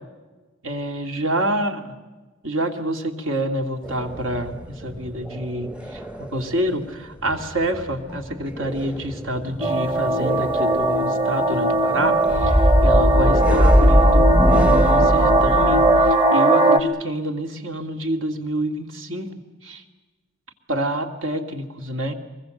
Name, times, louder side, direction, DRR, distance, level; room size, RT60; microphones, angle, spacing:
voice 1, 0.6-1.8 2.4-19.3 19.6-19.8 20.7-22.1, right 1 dB, 75° right, 6 dB, 2.4 m, -27 dB
sound 1, 3.8-6.7 7.0-16.1, equal, 5° right, 0.8 m, -22 dB
sound 2, 9.6-16.8, right 2 dB, 25° right, 1.2 m, -19 dB
24.0 x 21.5 x 7.9 m, 1.2 s
head